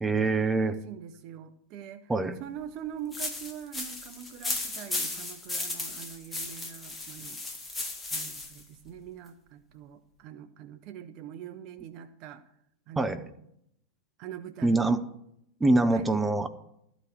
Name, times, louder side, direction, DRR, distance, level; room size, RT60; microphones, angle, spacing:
voice 1, 0.0-0.8 2.1-2.4 13.0-13.2 14.6-15.0 15.6-16.5, right 2 dB, 10° right, 8 dB, 0.8 m, -24 dB
voice 2, 0.6-2.1 2.4-7.5 8.1-12.4 12.9-13.2 14.2-14.8 15.9-16.1, right 9 dB, 40° right, 10 dB, 0.6 m, -43 dB
sound 1, 3.1-8.6, left 2 dB, 10° left, 1.3 m, -35 dB
13.0 x 5.0 x 8.9 m, 0.78 s
figure-of-eight pair, 90°, 0 cm